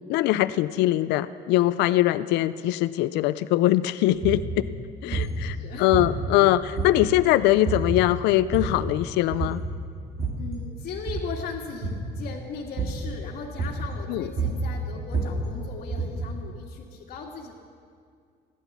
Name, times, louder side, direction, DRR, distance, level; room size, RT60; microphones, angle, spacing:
voice 1, 0.0-4.4 5.0-9.6 14.1-14.3, left 15 dB, 85° left, 14 dB, 0.4 m, -22 dB
sound 1, 4.2-4.5 5.1-5.4 5.9-6.4 6.7-7.2 7.6-8.0 8.3-8.9 9.3-9.7 10.0-10.5 10.9-11.3 11.8-12.1 12.8-13.1 13.6-13.9 14.2-16.3, right 3 dB, 65° right, 2.7 m, -29 dB
voice 2, 4.6-5.9 10.4-17.5, left 5 dB, 60° left, -4 dB, 1.9 m, -38 dB
15.5 x 11.0 x 7.1 m, 2.2 s
cardioid pair, 110°, 17 cm